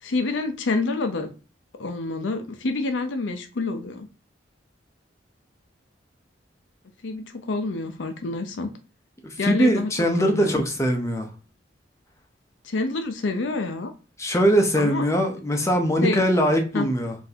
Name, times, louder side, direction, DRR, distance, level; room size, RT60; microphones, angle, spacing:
voice 1, 0.0-1.3 1.8-4.1 7.0-8.7 9.4-9.9 10.2-10.6 12.6-13.9 14.8-15.0 16.0-16.2 16.7-16.9, left 3 dB, 75° left, 0.6 m, -27 dB
voice 2, 9.2-11.3 14.2-17.1, equal, 15° left, 0.5 m, -21 dB
3.9 x 2.6 x 2.7 m
head